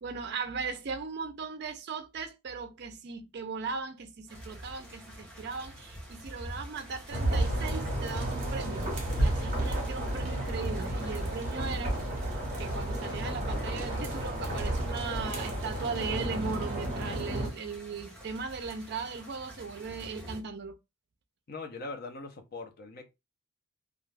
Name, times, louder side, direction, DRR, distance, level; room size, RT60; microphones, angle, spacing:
voice 1, 0.0-8.9 9.2-11.9 12.6-20.7, right 5 dB, 45° right, 0.4 m, -38 dB
sound 1, 4.3-20.4, equal, 5° left, 0.7 m, -48 dB
sound 2, 7.1-17.5, right 1 dB, 30° right, 1.0 m, -32 dB
voice 2, 21.5-23.1, left 3 dB, 40° left, 0.5 m, -41 dB
2.4 x 2.3 x 3.2 m
head